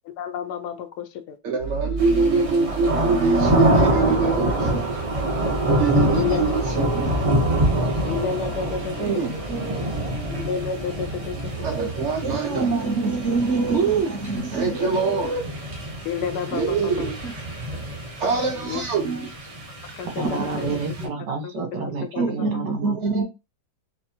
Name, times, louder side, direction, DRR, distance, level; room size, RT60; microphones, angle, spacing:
voice 1, 0.2-1.4 4.2-4.5 6.1-7.0 8.0-9.1 10.3-11.4 11.7-11.8 12.5-12.6 14.8-15.0 16.0-17.1 17.7-17.8 18.7-18.8 20.0-20.7 21.4-21.6 22.0-22.4, left 7 dB, 75° left, 1.1 m, -31 dB
voice 2, 1.4-4.8 5.8-6.6 6.9-7.1 9.0-10.1 11.6-15.4 16.5-17.3 18.2-19.3 22.1-23.2, right 4 dB, 50° right, 1.0 m, -24 dB
sound 1, 1.6-9.7, right 4 dB, 60° left, 0.7 m, -35 dB
sound 2, 2.0-21.1, right 1 dB, 35° right, 0.5 m, -26 dB
voice 3, 20.0-22.9, right 4 dB, 85° right, 1.5 m, -30 dB
4.3 x 2.7 x 2.7 m
omnidirectional pair, 1.8 m